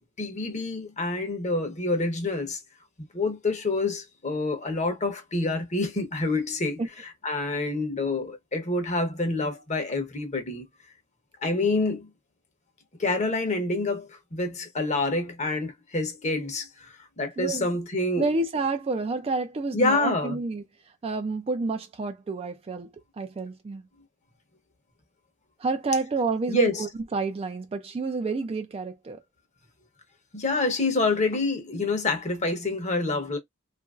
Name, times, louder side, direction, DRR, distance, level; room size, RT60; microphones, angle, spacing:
voice 1, 0.2-2.6 3.1-6.8 7.2-10.6 11.4-12.1 13.0-18.3 19.7-20.4 26.5-26.8 30.3-33.4, left 2 dB, 35° left, 0.8 m, -27 dB
voice 2, 17.4-17.7 18.2-20.6 21.0-23.9 25.6-29.2, right 3 dB, 30° right, 0.3 m, -29 dB
2.8 x 2.5 x 2.3 m
head